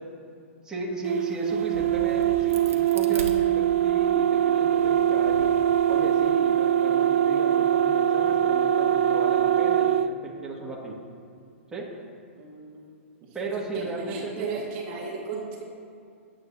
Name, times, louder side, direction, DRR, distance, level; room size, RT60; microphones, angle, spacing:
voice 1, 0.6-5.5 5.9-10.0 10.2-11.0 11.7-11.9 13.3-14.5, right 2 dB, 10° right, -5 dB, 2.0 m, -35 dB
sound 1, 1.0-10.1, right 10 dB, 65° right, 0.5 m, -22 dB
Crack, 1.5-4.1 4.6-6.3, right 3 dB, 90° right, 1.4 m, -41 dB
voice 2, 12.4-12.9 13.2-13.4 13.7-15.6, right 5 dB, 40° right, -1 dB, 1.8 m, -35 dB
20.0 x 8.2 x 2.8 m, 2.5 s
hypercardioid pair, 140°, 7 cm